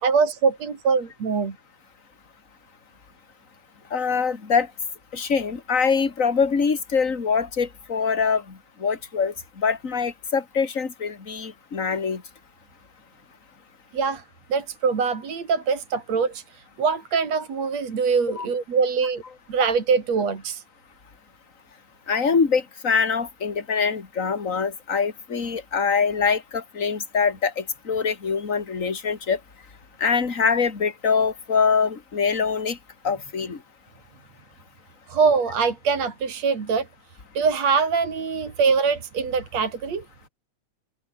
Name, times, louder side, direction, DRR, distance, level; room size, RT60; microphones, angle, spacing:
voice 1, 0.0-1.6 13.9-14.2 14.5-16.4 16.8-19.2 19.5-20.6 35.1-36.9 37.3-40.0, right 5 dB, 60° right, 4.6 m, -23 dB
voice 2, 3.9-4.7 5.1-12.2 18.4-18.5 22.1-29.4 30.0-32.8 33.0-33.6, left 5 dB, 25° left, 2.8 m, -24 dB
omnidirectional pair, 3.3 m